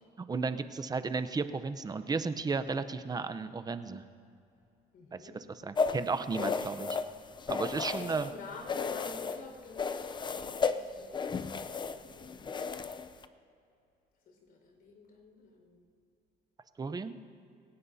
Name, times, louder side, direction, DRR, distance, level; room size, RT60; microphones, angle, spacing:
voice 1, 0.3-4.0 5.1-7.0 7.5-8.3 16.8-17.2, right 4 dB, 25° right, 11 dB, 0.7 m, -34 dB
voice 2, 4.9-5.4 7.7-12.9 14.2-15.8, left 3 dB, 60° left, 1 dB, 5.0 m, -50 dB
sound 1, 5.8-8.3 8.7-9.4 9.8-13.2, left 5 dB, 25° left, 0.6 m, -34 dB
28.0 x 17.0 x 2.8 m, 2.5 s
cardioid pair, 110°, 17 cm